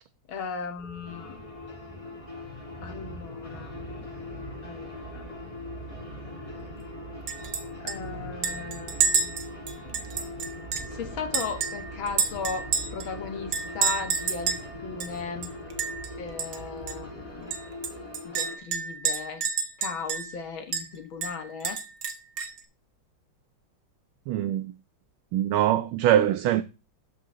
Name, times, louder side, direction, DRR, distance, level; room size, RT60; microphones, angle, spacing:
voice 1, 0.3-1.4 2.8-3.8 4.6-5.3 7.8-10.0 10.8-15.5 16.2-17.5 18.2-19.4 19.8-21.8, left 5 dB, 75° left, 2.1 m, -37 dB
sound 1, 0.8-18.2, right 1 dB, 25° right, 2.2 m, -44 dB
sound 2, 1.0-18.6, left 3 dB, 15° left, 2.5 m, -43 dB
Chink clink, 7.3-7.6 7.9-8.0 8.4-10.9 11.3-13.1 13.5-14.6 15.0-15.1 15.4-16.1 16.4-16.6 16.9-17.0 17.5-20.4 20.7-20.9 21.2-22.6, right 6 dB, 55° right, 1.5 m, -29 dB
voice 2, 24.3-24.7 25.3-26.6, right 12 dB, 85° right, 1.5 m, -23 dB
12.5 x 4.9 x 3.8 m
omnidirectional pair, 2.2 m